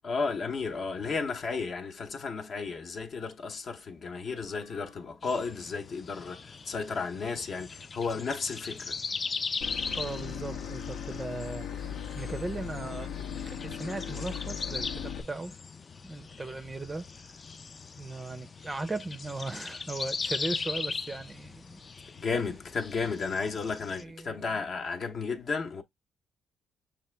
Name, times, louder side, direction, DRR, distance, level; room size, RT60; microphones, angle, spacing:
voice 1, 0.0-9.0 22.2-25.8, left 4 dB, 55° left, 0.7 m, -33 dB
sound 1, 5.2-24.0, left 4 dB, 35° left, 0.3 m, -39 dB
Boat Water vehicle / Engine, 9.6-15.2, left 8 dB, 85° left, 0.8 m, -38 dB
voice 2, 9.9-13.1 13.4-15.5 16.0-17.1 18.0-21.8 23.4-23.6 24.0-24.5, right 2 dB, 20° right, 0.5 m, -38 dB
6.5 x 2.4 x 3.2 m
cardioid pair, 95°, 0 cm